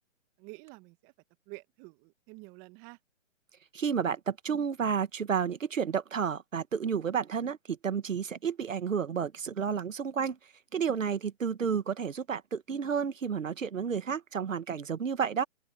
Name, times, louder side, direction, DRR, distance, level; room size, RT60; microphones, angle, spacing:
voice 1, 0.4-1.1 1.5-3.0, right 26 dB, 25° right, 1.4 m, -49 dB
voice 2, 3.7-10.4 10.7-15.4, right 7 dB, 80° right, 1.5 m, -31 dB
open air
hypercardioid pair, 140°, 38 cm